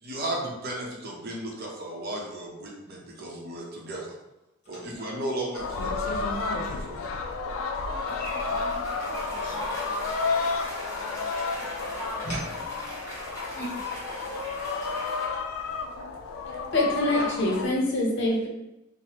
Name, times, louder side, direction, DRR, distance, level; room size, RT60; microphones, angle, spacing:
voice 1, 0.0-4.1 4.7-7.1, right 1 dB, 50° right, -2 dB, 0.7 m, -35 dB
sound 1, 4.6-11.1 11.4-12.7, right 1 dB, 35° left, 1.0 m, -43 dB
sound 2, 5.5-17.7, left 4 dB, 85° left, 0.3 m, -31 dB
voice 2, 7.9-10.1 10.8-11.7 11.9-12.6 13.5-13.8, left 1 dB, 10° left, -6 dB, 0.4 m, -41 dB
Cheering / Applause, 8.1-15.2, equal, 15° right, 1.2 m, -41 dB
voice 3, 16.7-18.5, left 1 dB, 60° left, -2 dB, 0.7 m, -25 dB
3.2 x 2.0 x 2.9 m, 0.92 s
head